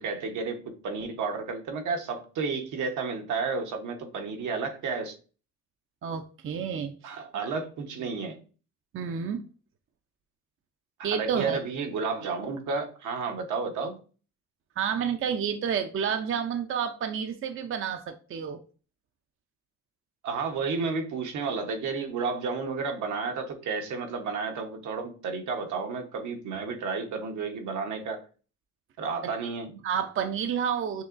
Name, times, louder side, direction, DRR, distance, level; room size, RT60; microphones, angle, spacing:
voice 1, 0.0-5.1 7.0-8.4 11.0-14.0 20.2-28.2 29.0-29.7, right 4 dB, 75° right, 4 dB, 1.1 m, -32 dB
voice 2, 6.0-7.2 8.9-9.4 11.0-11.6 14.8-18.6 29.2-29.3 29.8-31.0, right 7 dB, 45° right, 7 dB, 0.5 m, -30 dB
6.2 x 2.9 x 2.5 m, 0.36 s
cardioid pair, 90°, 30 cm